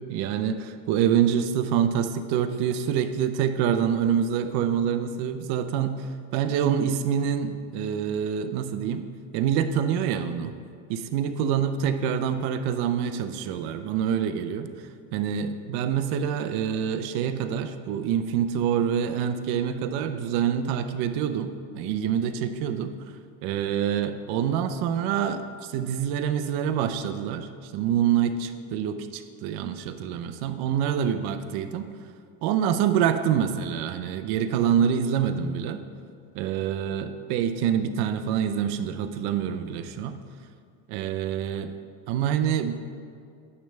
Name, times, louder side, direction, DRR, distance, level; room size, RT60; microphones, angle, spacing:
voice 1, 0.1-6.1 6.3-9.1 9.3-10.5 10.9-14.7 15.1-22.9 23.4-31.9 32.4-35.8 36.3-40.2 40.9-41.7 42.1-42.7, right 8 dB, 65° right, 9 dB, 0.7 m, -26 dB
9.7 x 3.4 x 7.0 m, 2.3 s
cardioid pair, 140°, 40 cm